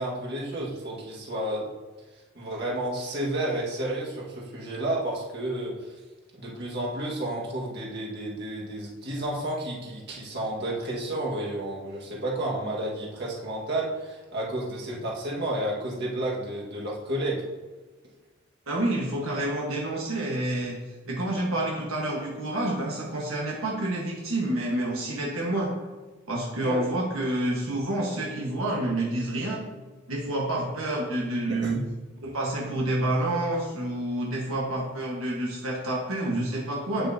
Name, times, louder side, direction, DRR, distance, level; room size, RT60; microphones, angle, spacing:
voice 1, 0.0-1.7 2.4-5.9 6.4-17.4 26.6-26.8 31.5-31.8, right 1 dB, 50° right, -4 dB, 1.7 m, -31 dB
voice 2, 18.7-20.8 21.1-25.7 26.3-29.6 30.1-31.8 32.2-37.1, right 1 dB, 75° right, -3 dB, 1.4 m, -28 dB
8.6 x 7.6 x 2.8 m, 1.3 s
head